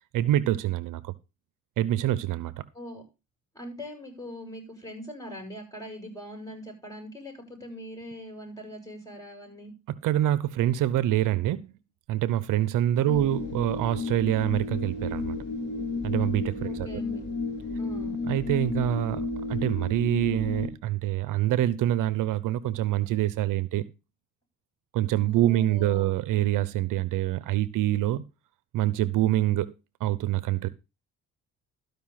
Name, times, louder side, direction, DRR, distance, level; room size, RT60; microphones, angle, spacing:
voice 1, 0.1-1.1 1.8-2.6 10.0-11.7 12.1-15.4 16.0-17.0 18.3-23.8 24.9-28.2 28.7-29.7 30.0-30.7, right 13 dB, 75° right, 0.8 m, -26 dB
voice 2, 3.5-9.7 13.0-13.3 16.6-17.2 17.8-18.2 25.3-26.2, equal, 10° left, 7.5 m, -41 dB
sound 1, 13.1-20.7, left 3 dB, 35° left, 4.0 m, -32 dB
13.5 x 5.5 x 5.8 m
cardioid pair, 80°, 32 cm